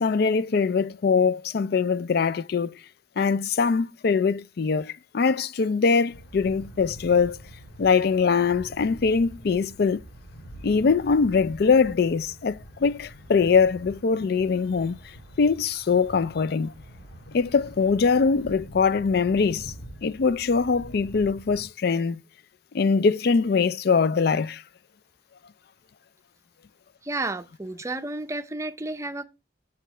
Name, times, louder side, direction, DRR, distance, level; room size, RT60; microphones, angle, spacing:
voice 1, 0.0-2.8 3.2-7.4 7.8-10.0 10.6-15.0 15.4-16.7 17.3-19.7 20.0-22.2 22.7-24.6, left 5 dB, 55° left, 0.4 m, -22 dB
sound 1, 6.1-21.6, right 1 dB, 75° left, 2.2 m, -45 dB
voice 2, 27.0-29.2, right 2 dB, 15° right, 0.5 m, -31 dB
7.5 x 7.0 x 3.3 m
head